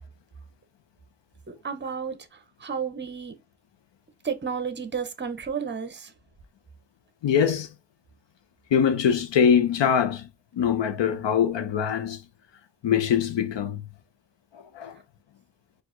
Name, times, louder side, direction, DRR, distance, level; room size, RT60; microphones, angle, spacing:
voice 1, 1.5-2.2 2.6-3.4 4.2-6.1, right 6 dB, 25° right, 0.6 m, -32 dB
voice 2, 7.2-7.7 8.7-12.2 12.8-13.9 14.5-15.0, left 8 dB, 75° left, 0.8 m, -23 dB
4.6 x 2.5 x 3.7 m
wide cardioid pair, 165°, 43 cm